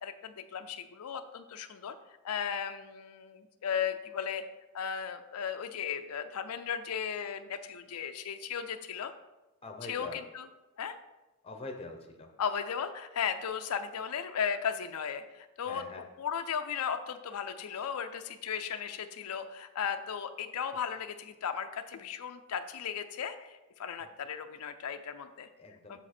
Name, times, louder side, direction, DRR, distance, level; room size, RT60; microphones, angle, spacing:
voice 1, 0.0-1.9 2.2-4.4 4.7-9.1 9.9-10.5 10.8-10.9 12.4-15.8 16.2-25.5 25.9-26.0, left 7 dB, 85° left, 8 dB, 0.5 m, -36 dB
voice 2, 9.6-10.2 11.4-12.3 15.7-16.0 25.6-26.0, left 3 dB, 25° left, 4 dB, 0.7 m, -44 dB
7.1 x 4.9 x 4.2 m, 1.0 s
head